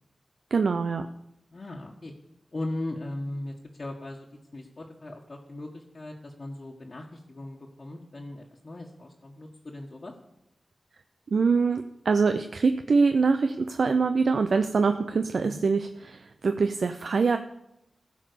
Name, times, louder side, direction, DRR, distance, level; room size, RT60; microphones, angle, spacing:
voice 1, 0.5-1.1 11.3-17.4, right 4 dB, 75° right, 8 dB, 0.5 m, -24 dB
voice 2, 1.5-2.1 2.5-10.1 15.4-15.6, left 1 dB, 45° left, -3 dB, 1.5 m, -38 dB
15.0 x 5.4 x 6.9 m, 0.85 s
wide cardioid pair, 75°, 0 cm